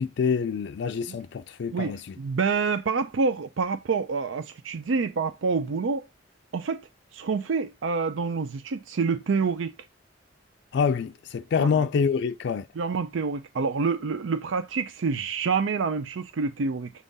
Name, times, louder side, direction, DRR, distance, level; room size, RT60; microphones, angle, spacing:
voice 1, 0.0-2.1 10.7-12.7, left 6 dB, 65° left, 0.3 m, -26 dB
voice 2, 1.7-6.1 6.5-9.7 11.6-11.9 12.8-16.9, right 4 dB, 90° right, 0.5 m, -27 dB
7.2 x 3.7 x 4.0 m
head